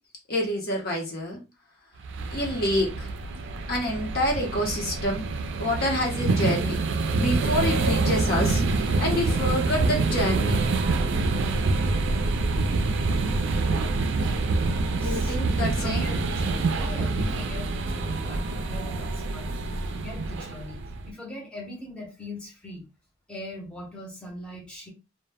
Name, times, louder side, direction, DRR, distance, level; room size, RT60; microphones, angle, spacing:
voice 1, 0.3-1.4 2.3-3.1 3.7-5.3 5.6-6.8 7.1-10.6 15.0-16.1, left 1 dB, 50° left, 0 dB, 0.8 m, -27 dB
sound 1, 2.0-21.1, right 3 dB, 65° right, 0.4 m, -26 dB
voice 2, 15.0-22.9 23.3-24.9, left 1 dB, 5° left, -3 dB, 0.7 m, -40 dB
2.1 x 2.1 x 3.3 m, 0.27 s
head